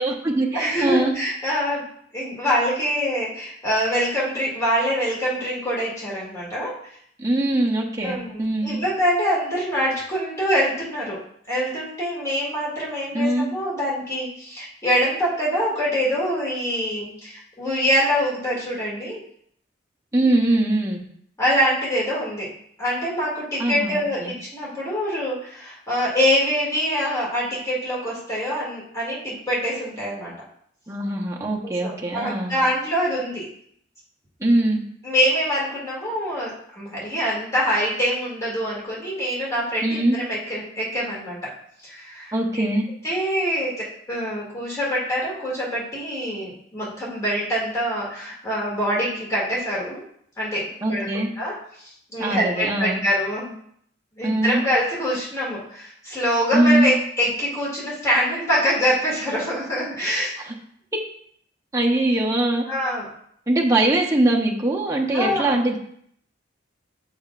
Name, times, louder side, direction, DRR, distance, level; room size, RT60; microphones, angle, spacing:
voice 1, 0.0-1.1 7.2-8.8 13.1-13.5 20.1-21.0 23.6-24.3 30.9-32.6 34.4-34.8 39.8-40.2 42.3-42.9 50.8-51.3 52.2-53.0 54.2-54.6 56.5-56.9 60.5-60.6 61.7-62.6 63.5-65.8, right 1 dB, 15° right, -2 dB, 0.8 m, -22 dB
voice 2, 0.5-1.8 2.1-6.8 8.0-11.2 11.5-19.2 21.4-22.5 22.8-30.3 31.6-33.5 35.0-41.5 41.8-42.6 43.0-50.0 50.4-51.1 51.4-53.5 54.2-60.4 62.7-63.1 65.1-65.6, equal, 15° left, -6 dB, 2.1 m, -25 dB
7.0 x 5.7 x 2.4 m, 0.67 s
head